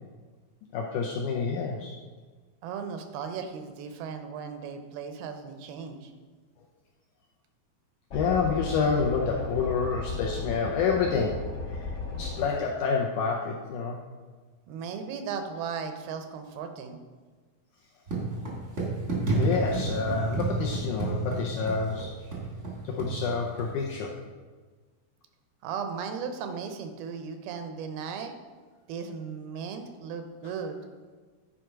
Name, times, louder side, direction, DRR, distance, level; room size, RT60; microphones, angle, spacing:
voice 1, 0.7-1.9 8.1-11.9 12.2-14.0 19.2-22.1 22.8-24.1, left 5 dB, 80° left, -1 dB, 1.8 m, -28 dB
voice 2, 2.6-6.1 14.7-17.0 25.6-28.3 28.9-30.8, right 6 dB, 85° right, 7 dB, 2.6 m, -36 dB
sound 1, 8.1-12.5, left 3 dB, 55° left, 1.1 m, -35 dB
sound 2, 18.1-23.9, right 3 dB, 50° right, 0.8 m, -31 dB
10.0 x 4.9 x 4.5 m, 1.4 s
omnidirectional pair, 4.3 m